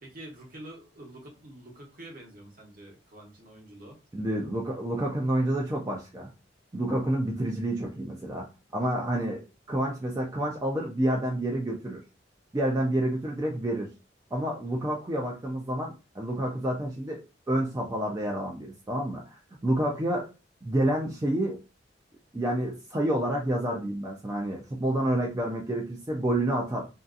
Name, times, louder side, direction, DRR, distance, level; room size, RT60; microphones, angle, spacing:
voice 1, 0.0-4.0, right 1 dB, 50° right, 0 dB, 0.9 m, -47 dB
voice 2, 4.1-6.3 6.7-8.5 8.7-12.0 12.5-13.9 14.3-20.3 20.6-21.6 22.3-26.9, right 1 dB, 20° right, -1 dB, 0.4 m, -29 dB
2.6 x 2.4 x 2.4 m, 0.30 s
head